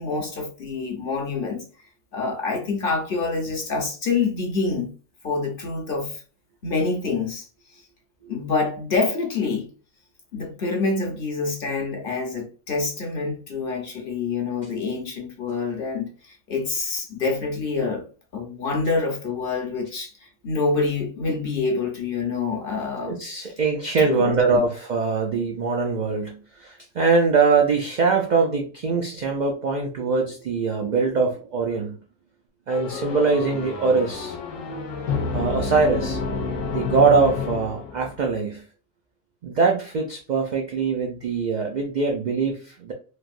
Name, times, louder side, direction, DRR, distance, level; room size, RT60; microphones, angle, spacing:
voice 1, 0.0-1.6 2.1-4.9 5.2-6.2 6.6-7.4 8.3-9.7 10.3-16.1 16.5-18.0 18.3-20.1 20.4-23.1 23.4-23.5 24.0-24.6, left 4 dB, 55° left, 0.8 m, -26 dB
voice 2, 23.0-32.0 32.7-34.4 35.3-36.2 36.7-38.6 39.4-42.9, right 4 dB, 70° right, 0.4 m, -22 dB
sound 1, 32.7-38.3, left 4 dB, 90° left, 1.1 m, -29 dB
3.3 x 2.5 x 2.4 m
omnidirectional pair, 1.3 m